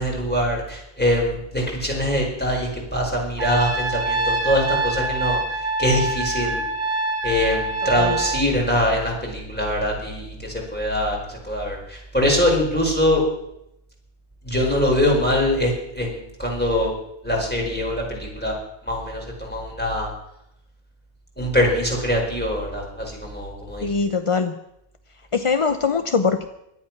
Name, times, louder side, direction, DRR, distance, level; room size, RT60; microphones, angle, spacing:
voice 1, 0.0-5.4 5.8-6.6 7.2-13.2 14.4-16.9 17.2-18.5 18.9-20.1 21.4-23.9, left 1 dB, 5° left, -2 dB, 4.8 m, -23 dB
Trumpet, 3.4-8.5, right 2 dB, 65° right, 2.0 m, -25 dB
voice 2, 23.8-24.5 25.3-26.4, left 5 dB, 40° left, 9 dB, 0.5 m, -22 dB
17.5 x 12.0 x 6.0 m, 0.82 s
omnidirectional pair, 1.4 m